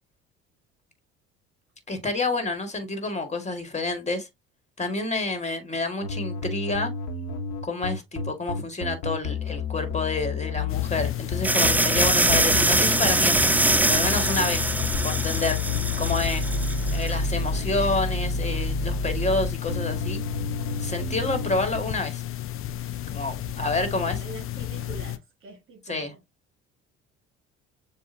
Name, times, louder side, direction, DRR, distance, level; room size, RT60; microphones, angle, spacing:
voice 1, 1.9-4.3 4.8-6.9 7.6-13.5 13.9-15.6 16.0-16.5 16.9-20.2 20.8-22.2 23.1-24.2 25.9-26.1, left 3 dB, 20° left, 1.9 m, -28 dB
sound 1, 6.0-21.8, left 3 dB, 65° left, 1.3 m, -30 dB
sound 2, 10.7-25.2, left 11 dB, 45° left, 0.6 m, -33 dB
sound 3, 11.4-17.1, right 2 dB, 5° right, 0.3 m, -23 dB
voice 2, 23.6-26.2, right 3 dB, 40° right, 1.8 m, -45 dB
7.1 x 2.6 x 2.7 m
hypercardioid pair, 70°, 31 cm